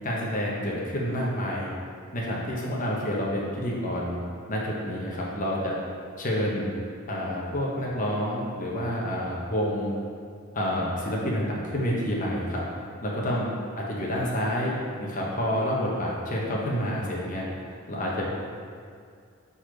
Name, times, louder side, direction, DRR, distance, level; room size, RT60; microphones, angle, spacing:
voice 1, 0.0-1.7 2.1-4.2 4.5-5.8 6.2-6.7 7.1-9.9 10.5-12.6 13.0-13.5 13.8-17.4 17.9-18.4, equal, 40° left, -4 dB, 1.1 m, -28 dB
4.9 x 4.2 x 5.1 m, 2.2 s
head